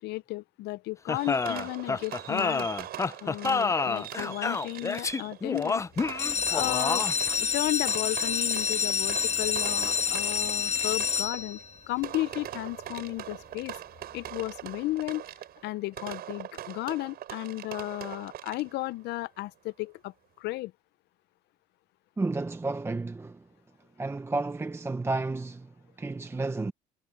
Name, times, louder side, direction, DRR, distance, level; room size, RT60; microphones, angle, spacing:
voice 1, 0.0-2.7 3.2-6.2 6.5-7.0 7.4-11.6 11.9-13.8 14.1-15.2 15.6-20.7, left 19 dB, 80° left, 0.6 m, -34 dB
sound 1, 1.1-7.3, left 4 dB, 20° left, 0.4 m, -29 dB
Fireworks, 1.2-18.9, right 12 dB, 65° right, 6.2 m, -42 dB
sound 2, 6.1-11.8 12.4-12.9 13.3-13.4 13.6-13.7 14.2-14.3, left 6 dB, 40° left, 1.4 m, -28 dB
voice 2, 22.2-23.4 24.0-25.7 26.0-26.7, right 3 dB, 15° right, 0.8 m, -31 dB
cardioid pair, 110°, 17 cm